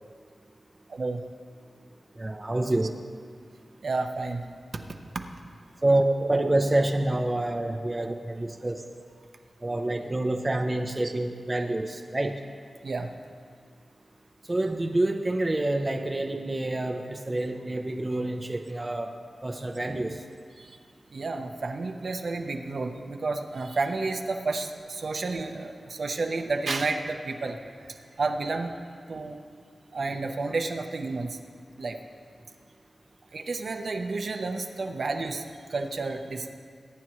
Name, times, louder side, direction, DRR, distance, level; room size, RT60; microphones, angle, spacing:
voice 1, 0.9-1.2 3.8-4.4 5.1-5.2 5.9-6.0 12.8-13.1 20.6-20.8 21.1-27.6 28.2-28.7 29.1-29.4 29.9-31.4 31.8-32.0 33.3-36.5, right 3 dB, 60° right, 4 dB, 0.8 m, -31 dB
voice 2, 2.2-2.9 5.8-8.8 9.6-12.4 14.5-19.1 19.4-20.2, right 1 dB, 20° right, 3 dB, 0.6 m, -27 dB
22.0 x 9.9 x 3.1 m, 2.1 s
wide cardioid pair, 120°, 0 cm